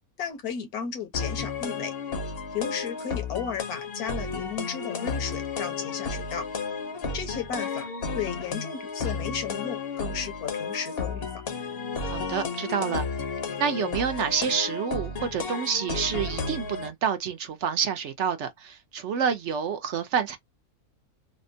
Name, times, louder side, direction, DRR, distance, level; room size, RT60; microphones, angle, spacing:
voice 1, 0.2-1.9 2.5-6.4 7.1-7.9 8.1-11.3, left 7 dB, 80° left, 1.4 m, -34 dB
sound 1, 1.1-16.9, left 4 dB, 50° left, 0.8 m, -32 dB
voice 2, 12.0-13.1 13.6-20.4, right 7 dB, 65° right, 0.8 m, -28 dB
3.5 x 2.1 x 2.6 m
omnidirectional pair, 1.6 m